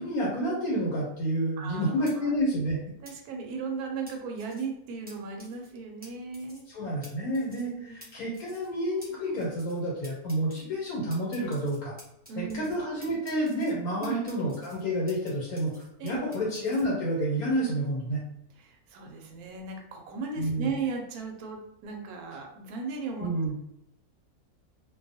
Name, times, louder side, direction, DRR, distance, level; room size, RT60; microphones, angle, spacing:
voice 1, 0.0-2.8 6.7-11.9 12.4-18.2 20.4-20.7 23.2-23.5, equal, 70° left, -5 dB, 1.2 m, -29 dB
voice 2, 1.6-2.3 3.0-6.7 7.5-8.0 12.3-12.7 14.0-14.2 16.0-16.4 18.6-23.3, right 4 dB, 75° right, 2 dB, 1.0 m, -36 dB
sound 1, 2.1-2.2 3.0-3.1 4.1-4.6 5.1-5.2 5.4-5.7 6.0-6.1 6.3-6.7 7.0-7.1 7.3-7.7 8.0-8.1 8.3-8.7 9.0-9.1 9.4-9.8 10.0-10.6 11.1-12.8 13.0-13.7 14.0-15.3 15.6-16.8, equal, 10° right, 0.4 m, -51 dB
2.5 x 2.2 x 2.6 m, 0.81 s
omnidirectional pair, 1.6 m